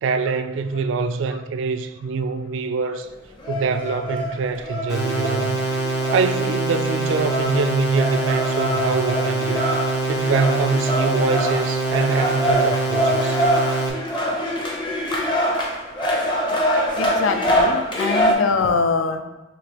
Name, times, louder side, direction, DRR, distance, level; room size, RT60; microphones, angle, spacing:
voice 1, 0.0-3.1 3.5-5.6 6.1-9.6 10.1-13.4, right 4 dB, 70° right, 0.3 m, -24 dB
sound 1, 3.4-18.3, equal, 25° left, 0.7 m, -24 dB
sound 2, 4.9-13.9, right 2 dB, 55° left, 0.9 m, -24 dB
voice 2, 16.0-16.4 17.0-19.2, left 4 dB, 80° left, 0.4 m, -24 dB
5.1 x 3.3 x 2.9 m
head